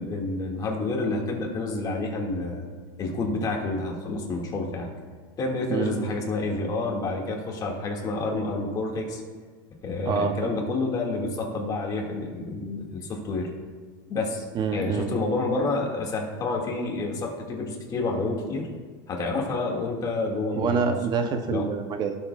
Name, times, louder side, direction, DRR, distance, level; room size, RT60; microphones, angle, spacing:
voice 1, 0.0-2.6 3.0-4.9 5.4-9.2 9.8-13.5 14.1-14.4 14.7-18.7 19.1-20.9 21.5-21.7, left 3 dB, 30° left, 0 dB, 1.9 m, -29 dB
voice 2, 10.1-10.5 14.5-15.1 20.6-22.2, right 6 dB, 35° right, 6 dB, 0.6 m, -26 dB
16.5 x 7.1 x 2.3 m, 1.5 s
supercardioid pair, 140°, 13 cm